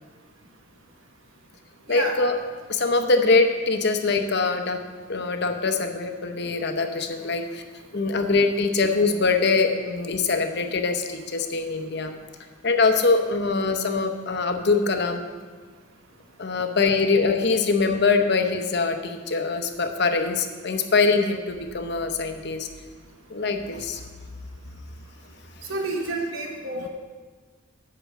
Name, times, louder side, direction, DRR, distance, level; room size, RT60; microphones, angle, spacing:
voice 1, 1.9-2.4 2.7-4.8 5.1-7.6 7.9-12.1 12.6-15.2 16.4-22.7 23.3-24.0 26.7-26.9, left 4 dB, 55° left, 6 dB, 0.8 m, -23 dB
voice 2, 25.7-26.9, right 2 dB, 80° right, 1 dB, 1.2 m, -29 dB
8.1 x 5.8 x 7.6 m, 1.5 s
head